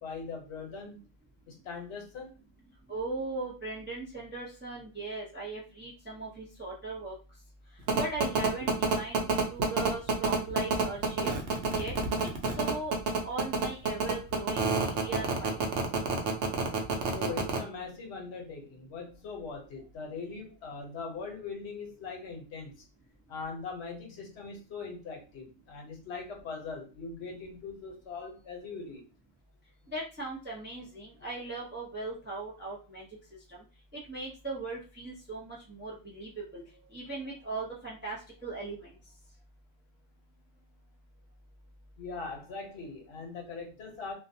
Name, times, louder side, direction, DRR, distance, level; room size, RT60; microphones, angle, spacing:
voice 1, 0.0-1.0 1.5-2.3 17.1-22.8 23.3-29.0 42.0-44.1, left 4 dB, 75° left, 1 dB, 1.0 m, -41 dB
voice 2, 2.9-7.1 8.0-11.3 11.7-11.9 12.6-12.9 13.2-15.7 29.9-33.1 33.5-33.6 33.9-36.6 36.9-38.9, right 2 dB, 20° right, -3 dB, 0.3 m, -38 dB
sound 1, 7.9-17.6, right 5 dB, 90° right, 0.9 m, -27 dB
2.5 x 2.1 x 2.6 m, 0.34 s
omnidirectional pair, 1.1 m